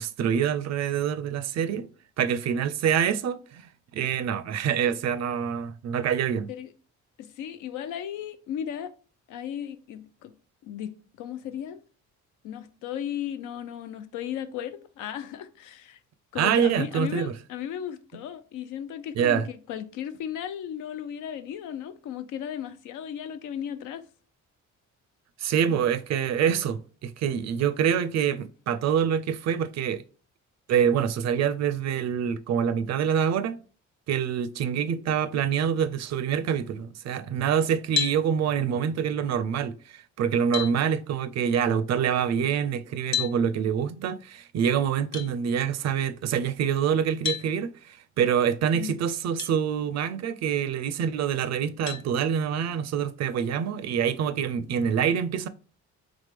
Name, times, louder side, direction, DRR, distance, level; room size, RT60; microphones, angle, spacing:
voice 1, 0.0-1.9 2.2-6.5 16.3-17.3 19.2-19.5 25.4-30.0 30.7-33.6 34.1-55.5, right 8 dB, 60° right, 0.5 m, -26 dB
voice 2, 7.2-8.9 9.3-10.3 10.6-11.8 12.4-16.0 16.3-24.1 48.7-49.0, left 9 dB, 85° left, 0.5 m, -35 dB
sound 1, 37.9-38.2 39.9-40.0 40.5-40.7 43.1-43.3 45.1-45.3 47.2-47.5 49.4-49.5 50.2-50.3 51.9-52.1, left 8 dB, 65° left, 0.8 m, -29 dB
3.6 x 3.4 x 3.3 m
cardioid pair, 90°, 30 cm